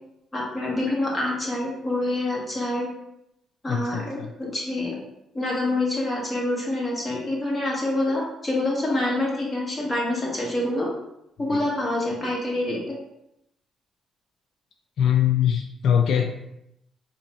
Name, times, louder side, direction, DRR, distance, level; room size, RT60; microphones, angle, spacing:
voice 1, 0.3-2.9 3.6-4.9 5.3-10.9 11.4-12.9, left 1 dB, 20° left, -4 dB, 1.5 m, -26 dB
voice 2, 3.7-4.3 11.5-11.6 15.0-16.3, left 9 dB, 70° left, 3 dB, 0.4 m, -22 dB
3.8 x 2.5 x 4.1 m, 0.83 s
cardioid pair, 90°, 0 cm